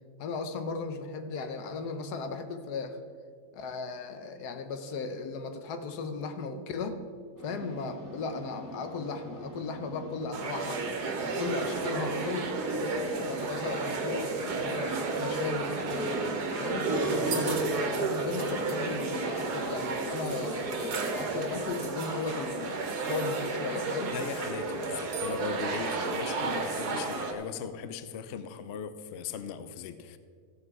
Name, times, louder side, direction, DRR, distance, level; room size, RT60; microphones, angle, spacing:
voice 1, 0.2-3.0 3.5-7.0 7.4-10.8 11.2-16.2 16.6-22.8 23.1-24.2, left 4 dB, 80° left, 8 dB, 1.4 m, -36 dB
sound 1, 7.4-21.6, right 1 dB, 10° right, 1.4 m, -44 dB
sound 2, 10.3-27.3, right 3 dB, 75° right, 1.8 m, -32 dB
voice 2, 24.1-30.2, left 7 dB, 60° left, 11 dB, 0.7 m, -38 dB
14.5 x 7.6 x 4.7 m, 2.1 s
omnidirectional pair, 1.7 m